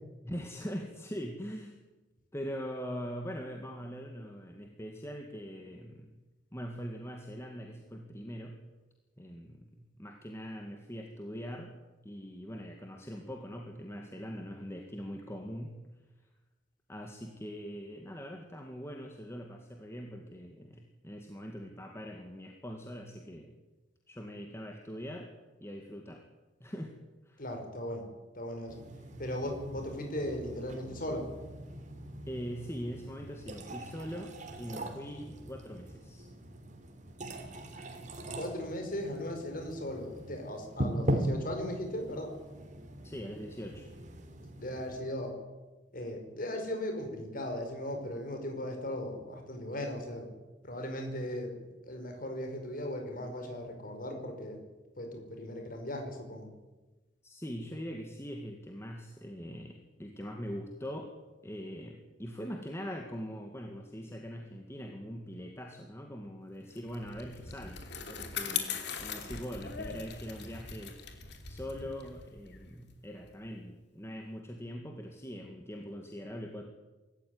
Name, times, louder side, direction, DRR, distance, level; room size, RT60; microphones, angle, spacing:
voice 1, 0.2-1.8 2.3-6.1 6.5-8.6 9.2-11.8 12.0-15.8 16.9-23.5 24.1-25.3 25.6-26.2 26.6-26.9 27.2-27.4 32.3-36.3 43.0-43.9 57.2-61.1 61.4-67.8 68.1-71.0 71.5-76.6, equal, 15° left, 2 dB, 2.1 m, -42 dB
voice 2, 27.4-28.1 28.3-28.8 29.2-31.3 38.4-42.3 44.6-45.4 45.9-50.3 50.6-54.6 55.0-56.5, left 1 dB, 50° left, 4 dB, 5.4 m, -37 dB
sound 1, 28.7-45.0, right 1 dB, 45° right, 3.3 m, -40 dB
Bicycle, 66.7-73.5, left 7 dB, 65° left, 3.2 m, -40 dB
25.0 x 14.5 x 9.7 m, 1.2 s
head